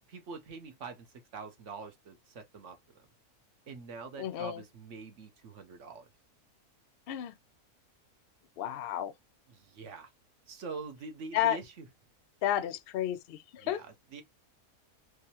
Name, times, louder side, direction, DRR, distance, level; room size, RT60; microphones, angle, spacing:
voice 1, 0.1-1.1 1.3-3.1 3.7-6.1 9.5-10.1 10.5-11.9 13.6-14.2, right 4 dB, 55° right, 1.1 m, -45 dB
voice 2, 4.2-4.6 7.1-7.3 8.6-9.1 11.3-11.6 12.4-13.8, left 11 dB, 90° left, 0.5 m, -32 dB
3.5 x 3.2 x 2.8 m
omnidirectional pair, 1.6 m